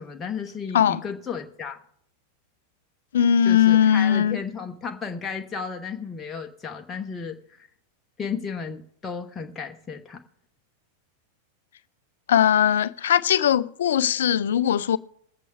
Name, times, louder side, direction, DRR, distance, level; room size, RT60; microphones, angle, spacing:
voice 1, 0.0-1.8 3.4-7.7 8.2-10.2, left 6 dB, 15° left, 1.1 m, -34 dB
voice 2, 3.1-4.4 12.3-15.0, left 9 dB, 60° left, 0.5 m, -19 dB
22.0 x 8.3 x 3.4 m
figure-of-eight pair, 90°, 0 cm